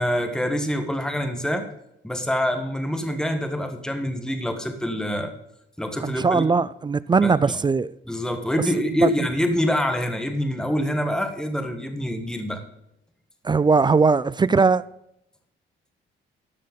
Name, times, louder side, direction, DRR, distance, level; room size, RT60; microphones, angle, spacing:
voice 1, 0.0-1.7 2.0-5.3 5.8-6.4 7.2-7.6 8.1-12.6, equal, 5° left, 1.5 m, -26 dB
voice 2, 6.0-7.9 8.7-9.3 13.4-14.8, right 4 dB, 20° right, 0.4 m, -20 dB
13.5 x 5.5 x 5.3 m
cardioid pair, 90°, 20 cm